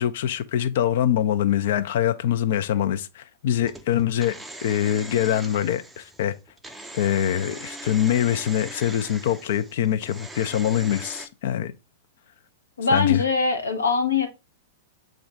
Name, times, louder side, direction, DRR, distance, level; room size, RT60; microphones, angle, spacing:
voice 1, 0.0-4.3 4.6-6.3 6.9-11.7 12.9-13.2, left 10 dB, 60° left, 0.4 m, -24 dB
sound 1, 3.6-11.3, right 2 dB, 5° right, 0.5 m, -41 dB
voice 2, 12.8-14.3, left 5 dB, 85° left, 0.9 m, -22 dB
6.1 x 2.5 x 3.3 m
figure-of-eight pair, 100°, 0 cm